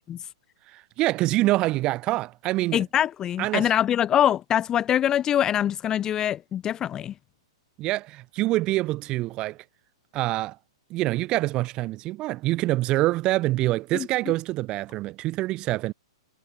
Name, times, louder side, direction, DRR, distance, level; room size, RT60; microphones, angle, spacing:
voice 1, 0.7-2.8 3.4-3.7 7.8-9.6 10.1-10.6 10.9-15.9, right 17 dB, 30° right, 2.5 m, -25 dB
voice 2, 2.7-7.1 13.9-14.1, left 10 dB, 20° left, 0.6 m, -24 dB
figure-of-eight pair, 110°, 3 cm